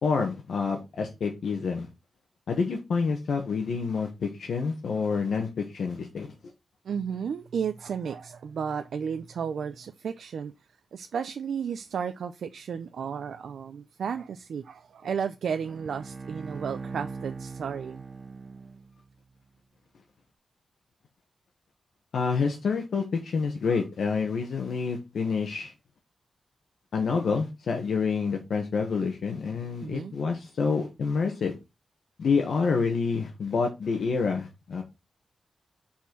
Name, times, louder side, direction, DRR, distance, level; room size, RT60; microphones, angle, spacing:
voice 1, 0.0-1.9 2.5-6.3 22.1-25.7 26.9-31.5 32.2-34.8, left 5 dB, 75° left, 1.3 m, -28 dB
voice 2, 6.8-10.5 10.9-18.0 29.8-30.1, right 7 dB, 90° right, 0.5 m, -33 dB
Bowed string instrument, 15.6-19.2, right 4 dB, 25° right, 0.7 m, -40 dB
5.6 x 4.4 x 6.0 m
wide cardioid pair, 145°, 0 cm